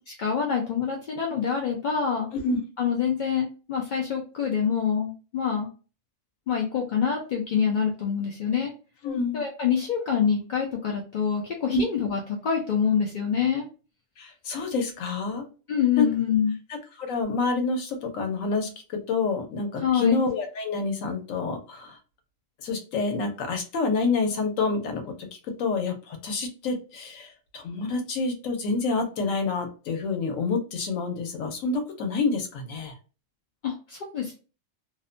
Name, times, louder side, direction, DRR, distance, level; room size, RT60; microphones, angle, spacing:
voice 1, 0.2-2.3 2.8-5.7 6.5-8.7 9.3-13.7 15.7-16.6 19.8-20.2 33.6-34.3, left 7 dB, 70° left, 0 dB, 0.4 m, -26 dB
voice 2, 9.0-9.4 11.7-11.8 14.2-15.5 16.0-16.1 17.0-18.7 19.1-22.0 22.6-25.0 25.6-32.9, left 4 dB, 90° left, 4 dB, 1.1 m, -27 dB
2.6 x 2.1 x 2.5 m, 0.35 s
omnidirectional pair, 1.3 m